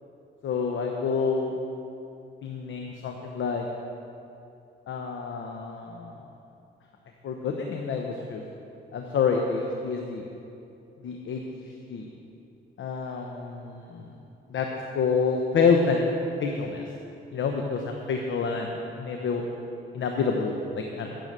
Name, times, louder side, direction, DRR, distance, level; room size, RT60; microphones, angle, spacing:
voice 1, 0.4-1.6 2.4-3.7 4.9-6.2 7.2-8.4 8.9-10.2 11.0-12.1 12.8-14.1 14.5-14.7 14.9-16.1 16.4-16.8 17.3-19.4 19.9-21.2, left 5 dB, 70° left, 2 dB, 1.0 m, -28 dB
11.5 x 6.9 x 8.1 m, 2.8 s
cardioid pair, 75°, 20 cm